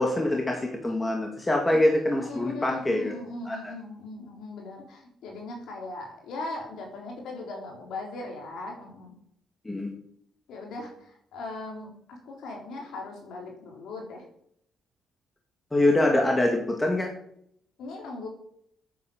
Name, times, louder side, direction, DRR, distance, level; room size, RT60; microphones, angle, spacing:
voice 1, 0.0-3.1 3.5-3.7 9.7-9.9 15.7-17.1, left 1 dB, 15° left, 1 dB, 2.1 m, -24 dB
voice 2, 1.7-9.1 10.5-14.2 17.8-18.3, left 2 dB, 80° left, 0 dB, 4.0 m, -39 dB
9.1 x 8.4 x 7.2 m, 0.69 s
cardioid pair, 90°, 0 cm